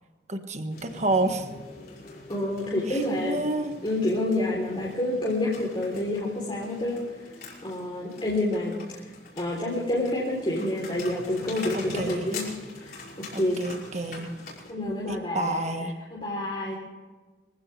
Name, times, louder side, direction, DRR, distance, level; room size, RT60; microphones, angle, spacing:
voice 1, 0.3-1.5 2.9-3.8 11.7-12.3 13.3-14.3 15.1-15.9, right 2 dB, 40° right, 6 dB, 1.5 m, -29 dB
sound 1, 0.7-14.7, left 3 dB, 60° left, 6.0 m, -43 dB
voice 2, 2.3-3.4 3.8-7.0 7.6-8.7 9.4-12.4 12.8-13.0 13.4-13.6 14.7-16.7, left 1 dB, 30° left, -5 dB, 3.5 m, -28 dB
24.5 x 16.0 x 3.4 m, 1.3 s
head